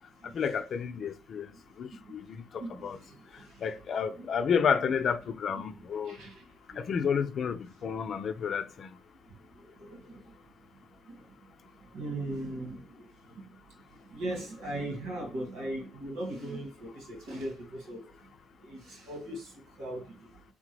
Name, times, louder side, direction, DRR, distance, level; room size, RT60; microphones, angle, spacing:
voice 1, 0.3-1.5 1.8-3.0 3.6-6.2 6.8-8.9, left 6 dB, 55° left, 0.5 m, -31 dB
voice 2, 2.6-3.7 4.2-4.3 6.0-6.9 9.3-10.4 11.1-11.3 11.8-13.6 14.0-18.1 18.6-20.3, right 1 dB, 90° right, 2.0 m, -39 dB
3.8 x 3.6 x 3.1 m
supercardioid pair, 70°, 0 cm